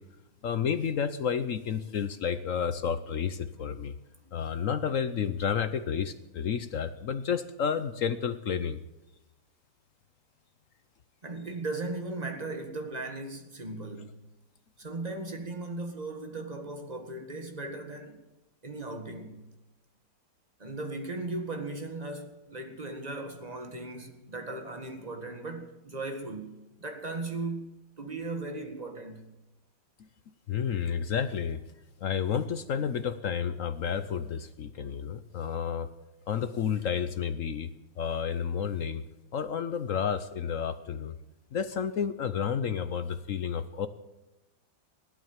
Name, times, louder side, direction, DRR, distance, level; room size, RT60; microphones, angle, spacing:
voice 1, 0.4-3.9 4.3-8.8 30.5-31.6 32.0-35.9 36.3-39.0 39.3-41.2 41.5-43.9, left 7 dB, 60° left, 0.9 m, -31 dB
voice 2, 11.2-14.2 14.8-18.2 18.6-19.4 20.6-29.3, right 2 dB, 20° right, 1.9 m, -37 dB
16.0 x 12.0 x 7.3 m
omnidirectional pair, 2.0 m